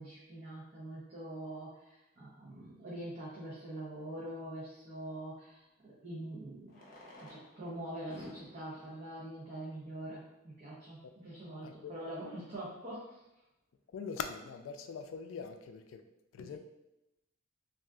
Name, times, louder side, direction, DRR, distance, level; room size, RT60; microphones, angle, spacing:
voice 1, 0.0-6.9 7.2-13.2, right 1 dB, 35° right, -7 dB, 0.6 m, -44 dB
Fireworks, 3.1-3.2 5.4-5.5 6.6-10.4 11.1-11.2 11.4-11.5 11.7-11.8 12.3-12.6, left 1 dB, 45° left, 0.7 m, -55 dB
voice 2, 11.6-11.9 13.9-16.0 16.3-16.6, left 6 dB, 80° left, 7 dB, 0.3 m, -42 dB
3.6 x 2.4 x 2.3 m, 0.92 s
head